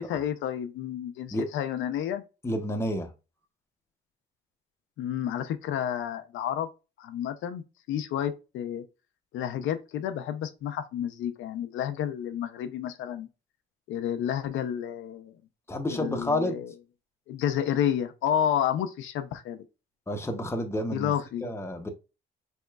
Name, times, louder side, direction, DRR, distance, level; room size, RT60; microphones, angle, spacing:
voice 1, 0.0-2.2 5.0-6.7 7.0-8.8 9.3-13.3 13.9-15.3 15.9-16.7 17.3-19.6 20.9-21.5, left 10 dB, 80° left, 0.5 m, -30 dB
voice 2, 2.4-3.1 15.7-16.6 20.1-21.1 21.4-21.9, left 1 dB, 15° left, 0.7 m, -30 dB
3.6 x 3.0 x 2.2 m
cardioid pair, 90°, 20 cm